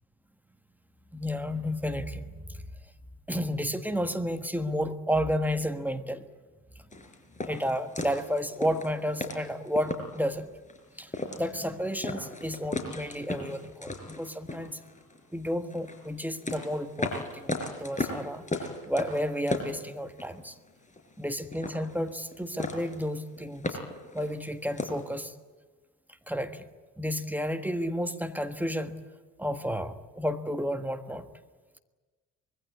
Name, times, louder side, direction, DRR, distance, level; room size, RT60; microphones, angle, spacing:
voice 1, 1.1-2.6 3.3-6.3 7.5-10.5 11.0-14.8 15.3-18.5 18.9-20.5 21.2-23.8 24.1-25.3 26.3-26.6 27.0-29.0 29.4-31.3, equal, 5° right, 7 dB, 1.5 m, -31 dB
sound 1, 6.9-10.3 10.7-10.8 11.1-11.7 12.0-15.2 15.7-20.4 20.7-21.3 21.5-22.3 22.6-23.1 23.4-25.1, left 2 dB, 15° left, 4.8 m, -36 dB
25.0 x 22.0 x 8.5 m, 1.3 s
figure-of-eight pair, 55°, 47 cm